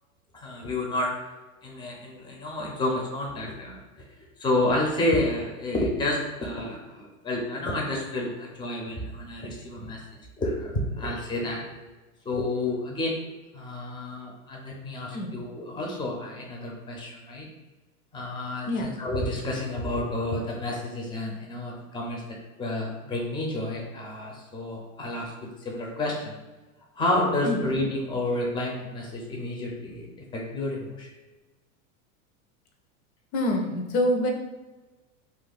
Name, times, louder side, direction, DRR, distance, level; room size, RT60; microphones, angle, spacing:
voice 1, 0.3-1.1 1.6-3.8 4.4-10.0 10.4-11.6 12.2-13.1 13.5-17.5 18.1-22.2 22.6-26.4 27.0-31.1 34.2-34.3, left 1 dB, 10° left, -1 dB, 0.6 m, -30 dB
voice 2, 33.3-34.3, left 1 dB, 65° left, 2 dB, 0.9 m, -26 dB
2.6 x 2.4 x 4.0 m, 1.2 s
hypercardioid pair, 110°, 43 cm